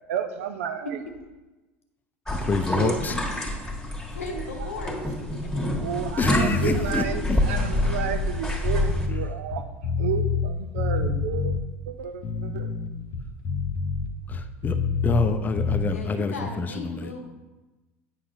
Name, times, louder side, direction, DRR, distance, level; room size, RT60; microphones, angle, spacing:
voice 1, 0.1-1.0 4.3-4.7 5.8-11.6 11.9-12.7, right 8 dB, 70° right, 9 dB, 0.5 m, -32 dB
voice 2, 2.3-3.2 6.2-7.4 14.3-14.8 15.0-17.1, left 3 dB, 25° left, 8 dB, 0.6 m, -27 dB
sound 1, 2.3-9.1, left 1 dB, 5° left, 1.5 m, -27 dB
voice 3, 4.1-5.2 15.8-17.2, left 3 dB, 80° left, 3 dB, 0.9 m, -37 dB
sound 2, 6.2-6.8 7.3-10.5 10.8-11.6 12.1-15.3 15.6-15.8, left 5 dB, 50° left, 0.8 m, -27 dB
8.6 x 5.6 x 2.6 m, 1.1 s
figure-of-eight pair, 70°, 7 cm